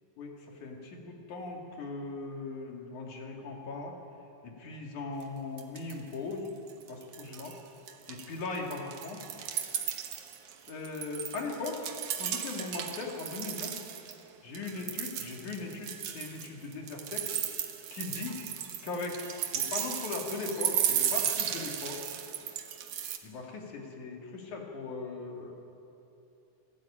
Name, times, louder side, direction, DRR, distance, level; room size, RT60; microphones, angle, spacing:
voice 1, 0.2-3.9 4.4-6.5 6.9-7.5 8.1-9.3 10.7-11.9 12.2-13.8 14.4-17.3 17.9-18.4 18.8-19.3 19.5-22.0 23.2-25.5, left 3 dB, 85° left, 0 dB, 4.1 m, -39 dB
sound 1, 5.2-5.3 5.6-6.1 6.5-7.6 7.9-14.1 14.5-23.2, right 10 dB, 85° right, 2.7 m, -35 dB
28.5 x 13.0 x 8.9 m, 2.8 s
omnidirectional pair, 3.4 m